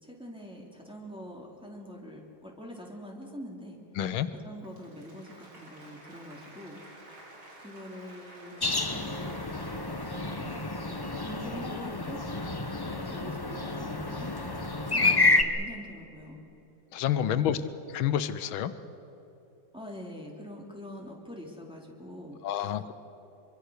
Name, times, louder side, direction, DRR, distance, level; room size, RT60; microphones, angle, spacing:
voice 1, 0.0-3.8 4.3-6.8 7.6-9.4 10.2-10.7 11.2-12.2 12.9-14.3 14.9-16.4 17.4-17.7 19.7-22.7, equal, ahead, -2 dB, 3.0 m, -44 dB
voice 2, 3.9-4.3 15.0-15.2 16.9-17.6 17.9-18.7 22.4-23.0, left 10 dB, 85° left, 13 dB, 1.6 m, -29 dB
Applause, 4.6-12.0, right 1 dB, 85° right, 4.2 m, -52 dB
sound 1, 8.6-15.4, left 2 dB, 20° left, 0.6 m, -29 dB
24.5 x 23.5 x 6.4 m, 3.0 s
omnidirectional pair, 2.2 m